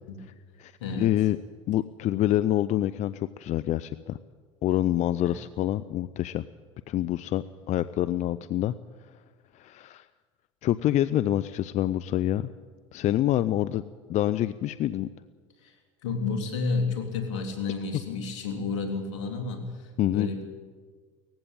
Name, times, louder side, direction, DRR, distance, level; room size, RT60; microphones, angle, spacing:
voice 1, 1.0-1.4 1.7-4.2 4.6-6.4 6.9-8.7 9.5-10.0 10.6-12.5 12.9-13.8 14.1-15.1 20.0-20.3, left 13 dB, 50° left, 15 dB, 0.6 m, -26 dB
voice 2, 16.0-20.4, left 4 dB, 85° left, 5 dB, 3.3 m, -31 dB
19.0 x 15.5 x 9.0 m, 1.5 s
hypercardioid pair, 80°, 15 cm